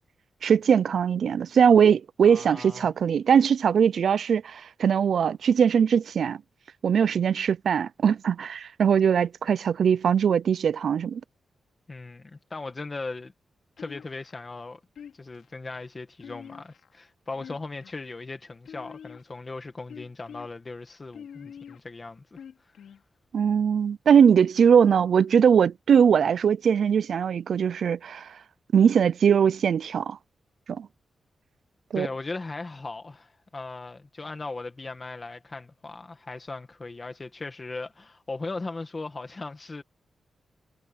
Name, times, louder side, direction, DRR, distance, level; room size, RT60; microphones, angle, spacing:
voice 1, 0.4-6.4 6.8-11.2 23.3-28.3 28.7-30.2 30.7-30.9 31.9-32.1, right 7 dB, 60° right, 0.5 m, -21 dB
voice 2, 2.2-2.9 11.9-13.3 13.8-14.8 15.1-22.7 31.9-39.8, left 3 dB, 25° left, 1.5 m, -38 dB
sound 1, 13.8-14.4 15.0-15.5 16.2-16.9 17.3-18.0 18.7-19.4 19.9-20.5 21.1-21.8 22.4-23.0, left 8 dB, 80° left, 3.5 m, -45 dB
wide cardioid pair, 160°, 0 cm